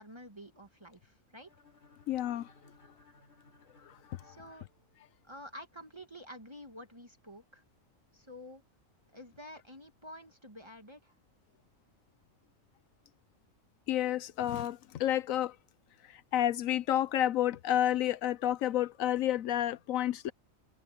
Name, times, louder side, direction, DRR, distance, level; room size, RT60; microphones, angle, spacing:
voice 1, 0.0-1.5 4.2-4.6 5.2-7.6 8.1-8.6 9.1-11.1, equal, 20° right, 1.8 m, -49 dB
sound 1, 1.5-5.4, left 3 dB, 55° left, 4.8 m, -62 dB
voice 2, 2.1-2.5 3.9-4.2 13.9-15.5 16.1-20.3, left 12 dB, 85° left, 1.2 m, -30 dB
omnidirectional pair, 1.4 m